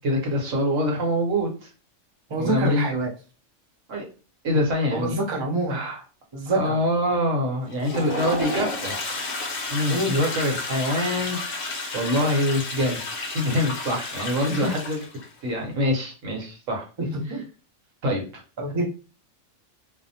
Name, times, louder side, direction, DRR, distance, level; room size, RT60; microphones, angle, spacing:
voice 1, 0.0-1.7 2.4-2.9 3.9-4.0 4.4-5.1 5.7-6.0 6.5-9.3 9.7-15.0 15.4-16.9 17.3-17.4 18.0-18.2, left 1 dB, 75° right, 0 dB, 1.2 m, -25 dB
voice 2, 2.3-3.1 4.9-5.8 6.3-6.8 9.9-10.2 14.5-14.7 17.0-17.4 18.6-18.8, right 2 dB, 40° right, 0 dB, 0.4 m, -26 dB
Toilet flush, 7.7-15.3, left 3 dB, 55° left, 0.8 m, -32 dB
2.7 x 2.1 x 2.6 m, 0.34 s
omnidirectional pair, 1.3 m